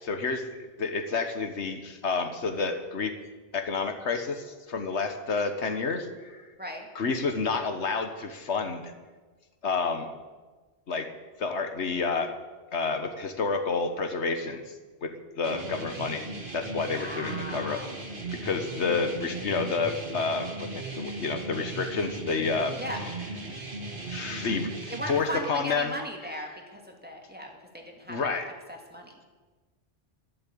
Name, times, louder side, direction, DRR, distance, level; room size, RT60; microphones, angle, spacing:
voice 1, 0.0-0.4 0.8-3.1 3.5-6.5 6.9-8.9 9.6-10.1 10.9-11.1 11.4-12.3 12.7-14.7 15.0-15.1 15.4-16.3 16.5-17.8 18.4-22.8 24.1-25.9 28.1-28.5, left 4 dB, 80° left, 7 dB, 1.5 m, -29 dB
sound 1, 15.4-25.2, right 2 dB, 50° right, 2.3 m, -37 dB
voice 2, 16.8-17.9 22.8-23.0 24.9-29.2, equal, 10° right, 1 dB, 2.3 m, -38 dB
12.0 x 12.0 x 8.6 m, 1.3 s
omnidirectional pair, 1.1 m